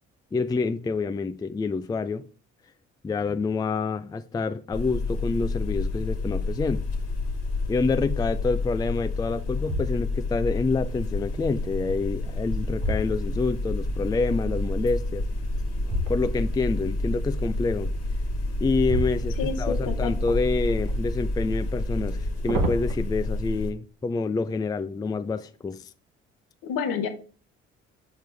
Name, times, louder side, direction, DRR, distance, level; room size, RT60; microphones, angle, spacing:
voice 1, 0.3-2.2 3.0-6.8 7.7-15.3 16.1-17.9 18.6-25.9, left 4 dB, 10° left, 0.4 m, -27 dB
sound 1, 4.7-23.7, left 2 dB, 45° left, 1.5 m, -29 dB
sound 2, 6.7-7.2 7.7-7.8 8.4-9.0 9.5-10.4 12.1-13.8 15.8-16.6 18.7-19.8 20.3-21.0 22.1-22.9, right 1 dB, 75° right, 1.0 m, -33 dB
voice 2, 19.4-20.1 26.6-27.1, left 6 dB, 70° left, 1.0 m, -29 dB
6.6 x 4.4 x 3.4 m
hypercardioid pair, 50°, 35 cm